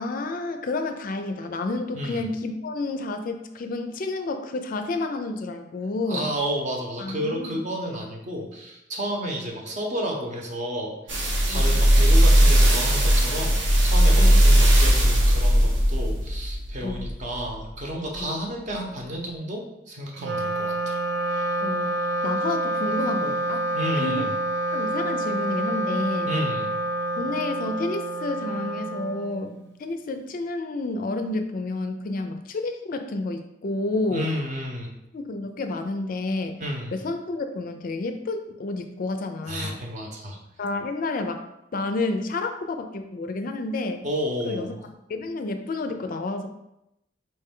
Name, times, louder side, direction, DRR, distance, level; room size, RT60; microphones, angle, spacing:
voice 1, 0.0-6.3 7.0-7.6 11.5-11.8 14.2-14.4 16.8-17.0 18.2-18.4 21.6-21.9 22.2-23.7 24.0-24.3 24.7-26.3 27.2-29.5 29.8-34.3 35.1-36.6 36.9-39.8 40.6-41.4 41.7-44.0 44.5-46.5, left 2 dB, 50° left, 7 dB, 0.4 m, -30 dB
voice 2, 6.0-11.2 11.5-21.0 23.7-24.3 26.2-26.7 34.1-34.9 36.6-37.0 39.5-40.4 44.0-44.8, equal, 40° right, 0 dB, 0.8 m, -31 dB
sound 1, 11.1-17.6 18.1-18.2, equal, 85° right, 1.0 m, -18 dB
Wind instrument woodwind instrument, 20.1-29.7, right 1 dB, 60° right, 0.3 m, -28 dB
4.3 x 3.2 x 3.6 m, 0.86 s
head